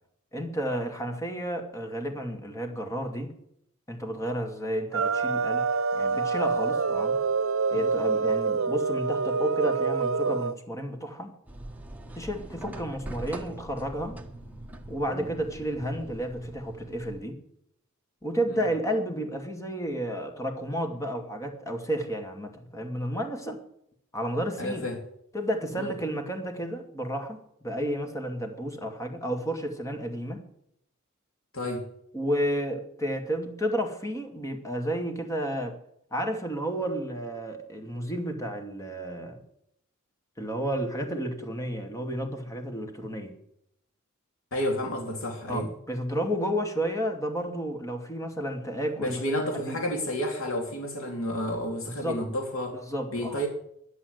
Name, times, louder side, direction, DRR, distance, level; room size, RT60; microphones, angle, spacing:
voice 1, 0.3-3.3 3.9-5.7 5.9-7.2 7.7-11.3 12.2-14.2 14.9-17.4 18.2-23.6 24.1-24.9 25.3-30.4 32.1-35.8 36.1-39.4 40.4-43.3 45.5-49.8 51.8-52.2 52.7-53.4, equal, 15° left, 4 dB, 2.3 m, -31 dB
sound 1, 4.9-10.5, right 4 dB, 70° right, 0.6 m, -26 dB
sound 2, 11.5-17.2, right 1 dB, 10° right, 1.5 m, -42 dB
voice 2, 24.6-25.0 25.8-25.9 31.5-31.9 44.5-45.7 49.0-52.8 53.1-53.5, equal, 75° left, 2 dB, 3.2 m, -31 dB
12.5 x 11.5 x 8.0 m, 0.73 s
head